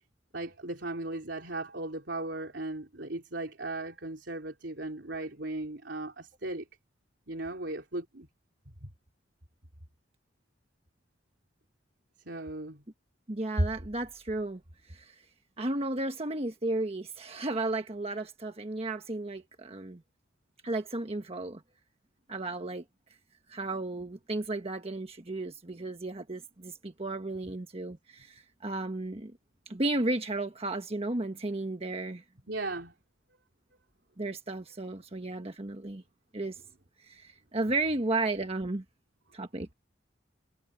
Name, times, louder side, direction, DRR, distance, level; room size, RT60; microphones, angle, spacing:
voice 1, 0.3-6.7 7.3-8.3 8.8-8.9 12.3-12.8 32.5-32.9, right 2 dB, 65° right, 3.9 m, -37 dB
voice 2, 13.3-14.6 14.9-15.1 15.6-20.0 20.6-21.6 22.3-22.8 23.5-29.3 29.7-32.2 34.2-36.0 36.3-36.6 37.0-38.8 39.3-39.7, right 2 dB, 35° right, 1.3 m, -33 dB
head